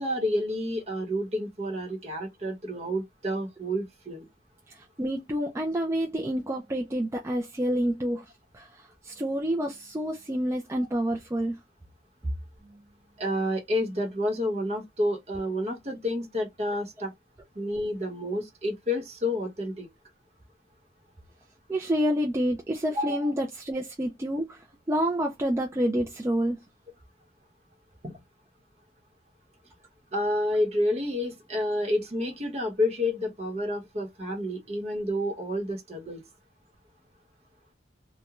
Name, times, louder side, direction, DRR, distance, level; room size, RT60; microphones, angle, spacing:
voice 1, 0.0-4.3 13.2-17.1 17.5-19.9 22.9-23.3 28.0-28.1 30.1-36.2, left 1 dB, 35° right, 0.9 m, -29 dB
voice 2, 4.7-8.3 8.5-11.6 21.7-26.6, equal, 15° right, 0.3 m, -28 dB
2.9 x 2.2 x 2.3 m
head